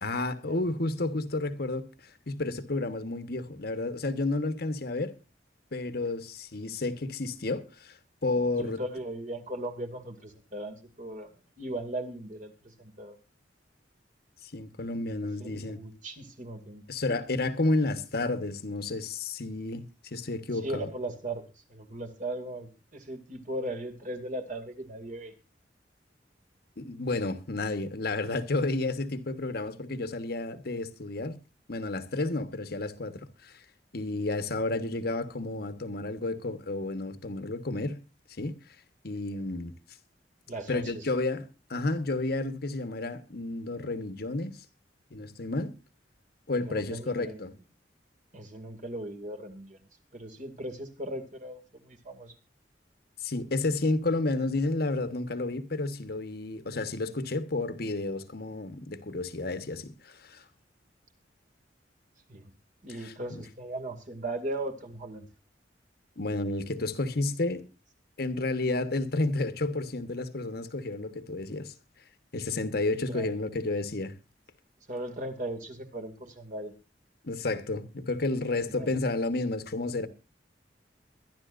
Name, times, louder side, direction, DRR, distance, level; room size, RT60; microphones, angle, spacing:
voice 1, 0.0-1.9 2.3-5.1 5.7-8.8 14.4-15.8 16.9-20.9 26.8-31.4 31.7-33.6 33.9-38.0 38.4-38.5 39.0-39.8 40.7-44.6 45.1-45.7 46.5-47.5 53.2-60.4 63.0-63.4 66.2-67.6 68.2-71.7 72.3-74.1 77.2-80.1, left 2 dB, 60° left, 1.2 m, -31 dB
voice 2, 8.3-11.3 11.6-13.2 15.4-16.8 20.5-25.3 40.5-41.1 46.6-47.4 48.3-49.9 50.1-52.3 62.3-62.5 62.8-65.3 73.1-73.3 74.9-76.7 78.6-79.0, right 1 dB, 45° right, 2.3 m, -38 dB
22.5 x 11.5 x 2.5 m
head